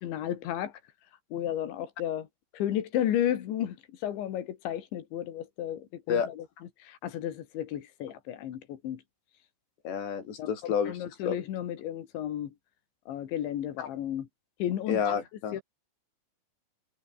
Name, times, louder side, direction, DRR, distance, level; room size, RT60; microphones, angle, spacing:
voice 1, 0.0-0.7 1.3-2.3 2.5-3.8 4.0-6.5 6.8-9.0 10.4-12.5 13.1-14.3 14.6-15.0 15.5-15.6, left 11 dB, 90° left, 4.6 m, -33 dB
voice 2, 9.8-11.0 11.2-11.5 13.8-13.9 14.9-15.6, left 7 dB, 70° left, 6.1 m, -29 dB
omnidirectional pair, 5.1 m